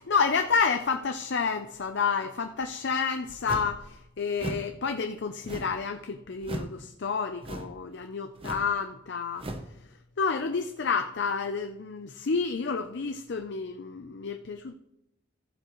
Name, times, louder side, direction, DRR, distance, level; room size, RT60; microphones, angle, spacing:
voice 1, 0.0-9.4 10.2-14.7, left 5 dB, 60° left, 6 dB, 0.6 m, -29 dB
sound 1, 3.4-3.8 4.4-4.7 5.4-5.9 6.4-6.8 7.4-7.8 8.4-8.7 9.4-9.7, right 1 dB, 30° right, 0.8 m, -37 dB
15.0 x 7.7 x 3.1 m, 0.86 s
head